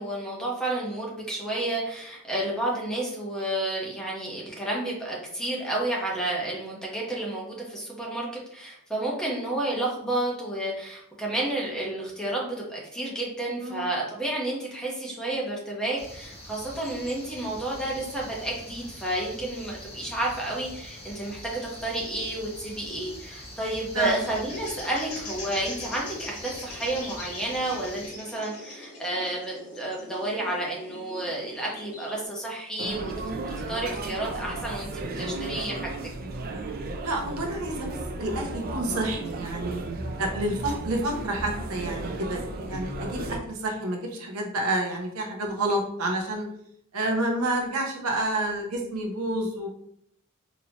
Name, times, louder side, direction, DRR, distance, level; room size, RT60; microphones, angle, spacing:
voice 1, 0.0-33.1 33.5-35.9, right 1 dB, 5° left, -3 dB, 0.9 m, -31 dB
voice 2, 13.6-13.9 23.9-24.2 37.0-39.8 40.2-46.5 46.9-49.7, right 1 dB, 75° right, 2 dB, 0.7 m, -29 dB
sound 1, 16.0-28.1, left 1 dB, 30° left, 1.0 m, -44 dB
sound 2, 24.0-32.3, left 2 dB, 80° left, 1.0 m, -42 dB
sound 3, 32.8-43.4, right 2 dB, 45° right, 0.4 m, -34 dB
4.1 x 2.8 x 2.8 m, 0.71 s
head